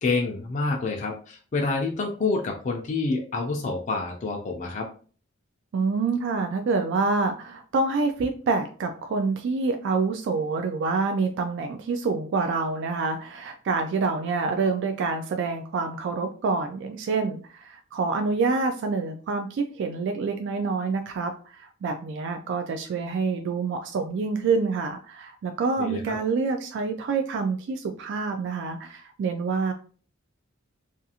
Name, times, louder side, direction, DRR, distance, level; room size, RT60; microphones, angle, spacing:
voice 1, 0.0-4.9 25.8-26.2, left 3 dB, 40° left, 0 dB, 0.4 m, -28 dB
voice 2, 5.7-29.7, right 4 dB, 60° right, 5 dB, 0.3 m, -27 dB
2.4 x 2.3 x 2.7 m, 0.39 s
head